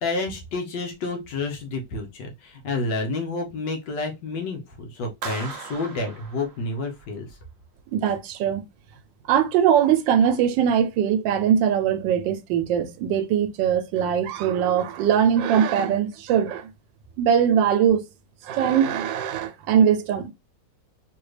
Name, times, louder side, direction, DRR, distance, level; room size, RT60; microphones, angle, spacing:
voice 1, 0.0-7.3, left 3 dB, 75° left, 1.6 m, -29 dB
Clapping, 5.2-7.1, right 5 dB, 55° right, 1.1 m, -38 dB
voice 2, 7.9-8.6 9.3-16.7 17.2-18.0 18.4-20.3, right 8 dB, 90° right, 1.3 m, -21 dB
3.8 x 2.8 x 3.2 m
omnidirectional pair, 1.9 m